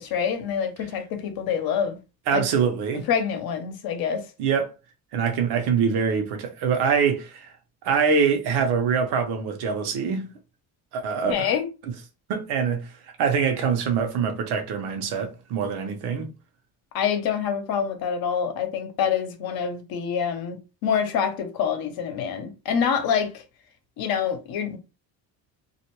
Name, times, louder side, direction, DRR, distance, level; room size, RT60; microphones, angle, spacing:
voice 1, 0.0-2.0 2.3-2.4 3.1-4.2 11.3-11.7 16.9-23.4 24.0-24.8, left 7 dB, 65° left, 0.8 m, -26 dB
voice 2, 2.3-3.0 4.4-4.7 5.1-7.5 7.8-10.3 10.9-11.5 12.3-12.9 13.2-16.3, right 6 dB, 80° right, 0.9 m, -24 dB
2.6 x 2.2 x 2.9 m
cardioid pair, 125°, 39 cm